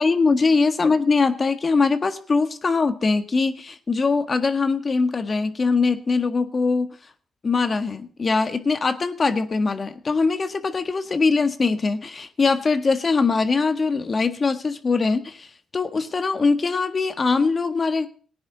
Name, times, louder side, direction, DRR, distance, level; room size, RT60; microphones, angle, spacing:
voice 1, 0.0-6.9 7.4-15.5 15.7-18.1, left 4 dB, 45° left, 9 dB, 1.6 m, -22 dB
18.5 x 9.7 x 4.0 m, 0.42 s
supercardioid pair, 55°, 0 cm